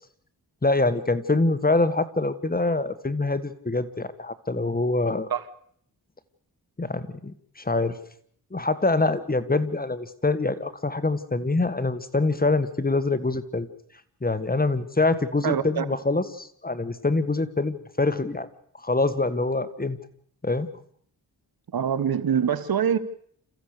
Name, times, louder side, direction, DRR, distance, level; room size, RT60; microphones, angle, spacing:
voice 1, 0.6-5.3 6.8-8.0 8.5-13.7 14.2-18.5 18.8-20.0 20.4-20.7, left 3 dB, 25° left, 1.6 m, -25 dB
voice 2, 15.4-15.9 21.7-23.0, right 8 dB, 65° right, 1.3 m, -24 dB
29.0 x 15.0 x 6.8 m
cardioid pair, 70°, 38 cm